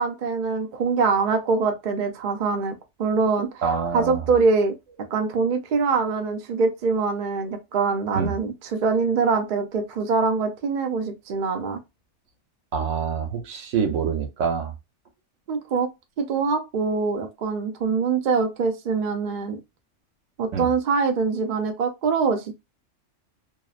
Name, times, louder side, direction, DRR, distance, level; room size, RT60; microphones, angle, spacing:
voice 1, 0.0-3.5 3.9-4.7 5.1-11.8 15.5-15.9 16.2-19.6 20.4-22.5, right 4 dB, 55° right, 0.6 m, -24 dB
voice 2, 3.6-4.3 8.1-8.4 12.7-14.7 20.5-20.7, right 6 dB, 85° right, 1.1 m, -26 dB
2.7 x 2.0 x 2.3 m
omnidirectional pair, 1.3 m